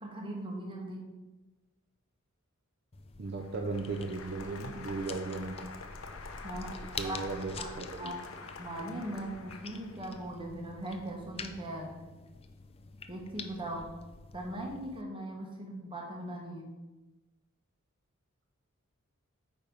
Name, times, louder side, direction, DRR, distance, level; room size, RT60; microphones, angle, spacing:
voice 1, 0.0-1.1 6.4-6.7 7.0-7.2 7.6-7.7 8.0-12.0 13.1-13.9 14.3-16.7, right 1 dB, 25° right, -1 dB, 1.4 m, -40 dB
sound 1, 2.9-15.0, left 4 dB, 30° left, 0.4 m, -47 dB
Applause, 3.2-10.2, left 3 dB, 70° left, 0.8 m, -47 dB
voice 2, 3.2-5.6 7.0-8.2, right 3 dB, 50° right, 3 dB, 0.5 m, -36 dB
8.8 x 3.4 x 5.4 m, 1.1 s
head